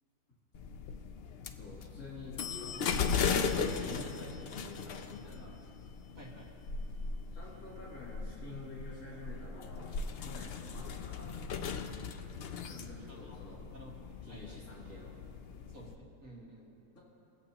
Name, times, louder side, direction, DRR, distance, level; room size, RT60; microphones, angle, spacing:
sound 1, 0.5-15.9, left 5 dB, 80° left, 0.5 m, -38 dB
voice 1, 1.6-5.5 7.3-11.3 12.6-13.6 14.2-15.1 16.9-17.0, left 3 dB, 65° left, -7 dB, 3.1 m, -49 dB
voice 2, 6.2-6.5 12.5-14.6 15.7-16.7, right 1 dB, 55° right, -4 dB, 2.2 m, -53 dB
22.5 x 8.0 x 2.9 m, 2.8 s
omnidirectional pair, 1.7 m